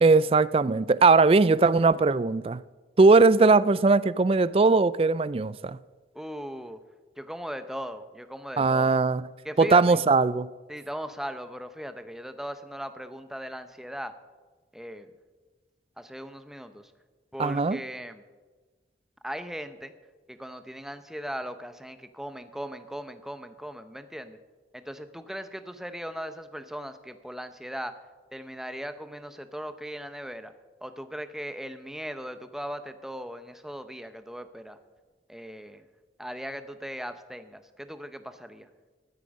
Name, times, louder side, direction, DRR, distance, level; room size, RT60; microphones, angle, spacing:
voice 1, 0.0-2.6 3.0-5.8 8.6-9.3 9.6-10.5 17.4-17.8, right 3 dB, 30° right, 0.3 m, -20 dB
voice 2, 6.1-6.8 7.2-9.0 9.4-10.0 10.7-14.1 14.7-15.1 16.0-16.8 17.3-18.2 19.2-19.9 20.3-24.4 24.7-27.9 28.3-30.5 30.8-34.8 35.3-35.8 36.2-38.7, equal, ahead, 0.7 m, -38 dB
14.5 x 12.5 x 5.3 m
head